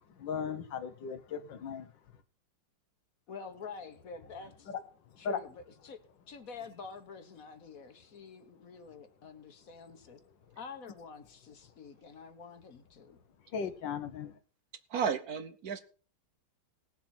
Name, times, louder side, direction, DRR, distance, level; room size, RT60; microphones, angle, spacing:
voice 1, 0.1-1.9 4.7-4.8 5.2-5.4 13.5-14.4, left 6 dB, 80° left, 10 dB, 1.7 m, -37 dB
voice 2, 3.3-4.7 5.2-6.0 6.3-10.2 10.6-13.2, left 5 dB, 50° left, 9 dB, 1.6 m, -47 dB
voice 3, 14.9-15.8, right 7 dB, 60° right, 10 dB, 1.3 m, -33 dB
19.0 x 7.2 x 4.4 m, 0.39 s
omnidirectional pair, 2.0 m